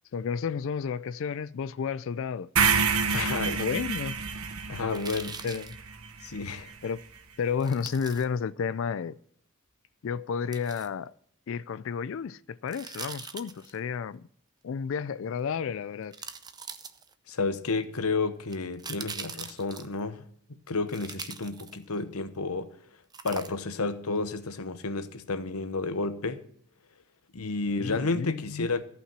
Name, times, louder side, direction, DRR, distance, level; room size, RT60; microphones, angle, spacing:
voice 1, 0.1-2.5 3.1-4.2 5.4-5.8 6.8-7.0 7.4-9.2 10.0-11.1 11.5-14.2 14.6-16.2 22.0-22.1 27.8-28.7, left 6 dB, 60° left, 0.4 m, -32 dB
sound 1, 2.6-6.7, right 6 dB, 85° right, 1.1 m, -28 dB
voice 2, 3.1-3.6 4.7-5.4 6.2-6.7 17.3-20.2 20.7-22.8 23.2-26.4 27.3-28.8, left 3 dB, 85° left, 1.0 m, -31 dB
sound 2, 4.9-5.8 7.6-8.2 10.5-10.9 12.7-13.8 15.4-15.5 16.1-17.3 18.5-20.0 20.9-22.0 23.1-23.8 24.2-24.3, right 5 dB, 20° right, 0.6 m, -42 dB
14.0 x 5.8 x 7.4 m
head